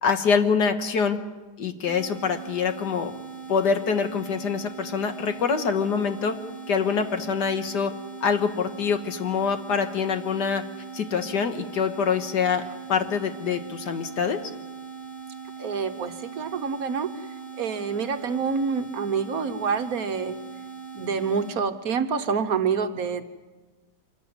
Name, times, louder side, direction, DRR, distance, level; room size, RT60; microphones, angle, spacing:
voice 1, 0.0-1.2 1.6-3.1 3.5-6.3 6.7-7.9 8.2-10.6 10.9-12.6 12.9-14.4, left 6 dB, 75° left, 7 dB, 2.0 m, -25 dB
sound 1, 1.9-21.6, right 6 dB, 50° left, 4.3 m, -40 dB
voice 2, 15.6-17.1 17.6-20.4 20.9-23.2, right 5 dB, 60° right, 9 dB, 1.4 m, -27 dB
25.5 x 14.5 x 9.6 m, 1.3 s
omnidirectional pair, 1.8 m